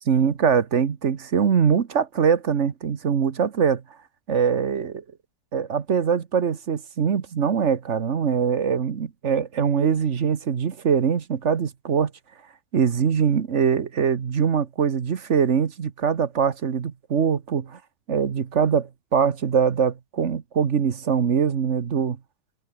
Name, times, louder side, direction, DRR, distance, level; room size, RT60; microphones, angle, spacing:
voice 1, 0.1-3.8 4.3-5.0 5.5-12.1 12.7-17.8 18.1-22.2, right 7 dB, 45° right, 1.4 m, -22 dB
omnidirectional pair, 1.9 m